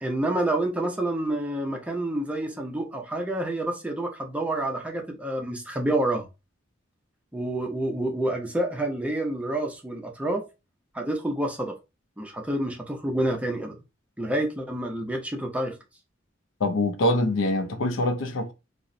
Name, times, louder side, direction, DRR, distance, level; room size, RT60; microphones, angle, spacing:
voice 1, 0.0-6.3 7.3-10.4 10.9-11.7 12.2-13.7 14.2-15.7, right 1 dB, 5° right, 0.4 m, -28 dB
voice 2, 16.6-18.5, left 1 dB, 80° left, 0.5 m, -24 dB
2.9 x 2.0 x 2.5 m
head